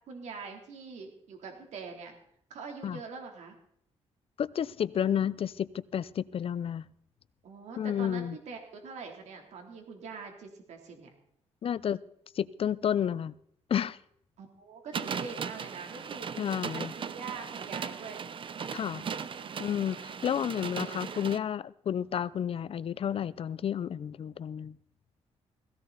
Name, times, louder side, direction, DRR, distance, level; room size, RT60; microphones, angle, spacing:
voice 1, 0.1-2.1 2.5-3.6 7.4-11.1 14.4-16.3 16.6-18.2 18.9-19.6 20.0-21.2, right 5 dB, 75° right, 3.3 m, -44 dB
voice 2, 4.4-6.9 7.8-8.4 11.6-12.0 12.3-13.3 13.7-14.0 16.4-16.9 18.7-19.1 19.6-24.8, left 9 dB, 55° left, 0.6 m, -31 dB
sound 1, 14.9-21.4, right 6 dB, 45° right, 0.8 m, -38 dB
18.0 x 16.5 x 4.1 m
cardioid pair, 100°, 12 cm